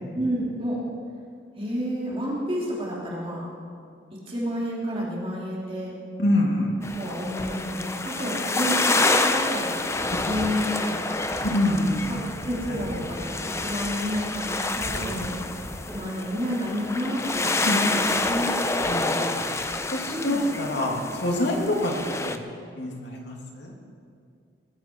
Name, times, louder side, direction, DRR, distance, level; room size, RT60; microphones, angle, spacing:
voice 1, 0.1-0.8 1.6-3.5 4.3-5.9 6.9-9.7 10.0-11.2 12.1-12.2 12.4-15.3 15.9-18.5 20.1-20.4, equal, 30° right, -5 dB, 3.1 m, -30 dB
voice 2, 6.2-6.7 10.2-10.3 11.4-12.1 12.7-12.8 15.1-15.3 17.6-17.9 18.8-19.4 19.9-21.9 22.2-22.4 22.8-23.7, left 1 dB, 60° left, 0 dB, 2.7 m, -26 dB
sound 1, 6.8-22.4, left 2 dB, 15° left, 0.6 m, -28 dB
20.0 x 14.5 x 4.6 m, 2.3 s
head